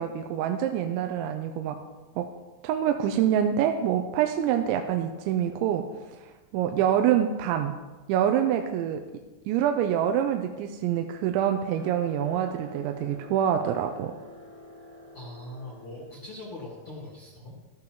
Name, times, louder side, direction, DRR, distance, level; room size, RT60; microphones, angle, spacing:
voice 1, 0.0-1.8 2.2-2.3 2.6-5.9 6.5-7.8 8.1-9.0 9.5-14.2, right 9 dB, 85° right, 5 dB, 2.9 m, -26 dB
sound 1, 11.8-16.8, equal, 40° right, 0.9 m, -47 dB
voice 2, 15.1-17.5, left 1 dB, 50° left, -6 dB, 1.7 m, -41 dB
14.5 x 13.0 x 3.0 m, 1.2 s
omnidirectional pair, 5.3 m